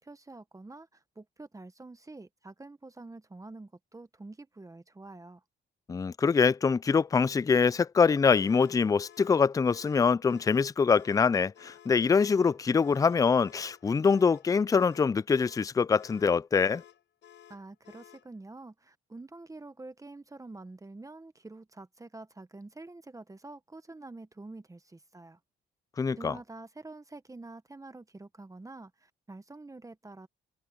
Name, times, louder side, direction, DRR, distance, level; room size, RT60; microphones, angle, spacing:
voice 1, 0.0-5.4 17.5-25.4 26.2-30.3, right 2 dB, 15° right, 1.2 m, -47 dB
voice 2, 5.9-16.8 26.0-26.3, left 5 dB, 15° left, 0.3 m, -24 dB
sound 1, 8.4-18.3, left 10 dB, 70° left, 6.0 m, -55 dB
cardioid pair, 90°, 20 cm